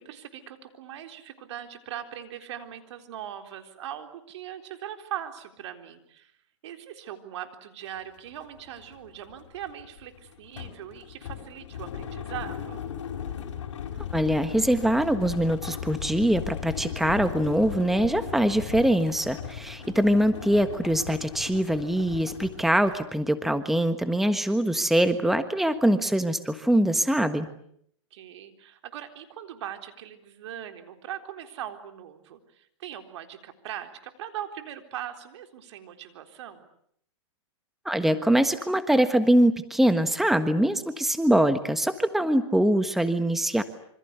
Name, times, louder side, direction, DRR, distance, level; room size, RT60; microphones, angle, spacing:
voice 1, 0.0-6.3 6.6-12.9 19.8-20.3 28.1-36.7, right 10 dB, 65° right, 6 dB, 3.9 m, -40 dB
sound 1, 7.9-8.0 8.3-23.1, left 8 dB, 70° left, 5.9 m, -38 dB
voice 2, 14.1-27.5 37.8-43.6, right 1 dB, ahead, 10 dB, 1.4 m, -23 dB
27.0 x 26.0 x 8.2 m, 0.69 s
hypercardioid pair, 130°, 16 cm